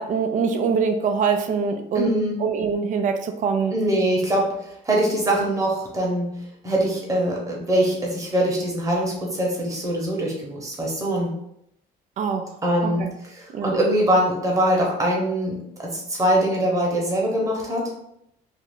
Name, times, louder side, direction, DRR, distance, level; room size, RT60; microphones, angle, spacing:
voice 1, 0.0-2.1 2.4-3.7 12.2-12.5 12.8-13.1 13.5-13.7, right 5 dB, 50° right, 6 dB, 0.4 m, -23 dB
voice 2, 1.9-2.4 3.7-11.3 12.6-17.9, right 1 dB, 20° right, -2 dB, 1.0 m, -23 dB
2.6 x 2.3 x 3.5 m, 0.77 s
cardioid pair, 110°, 17 cm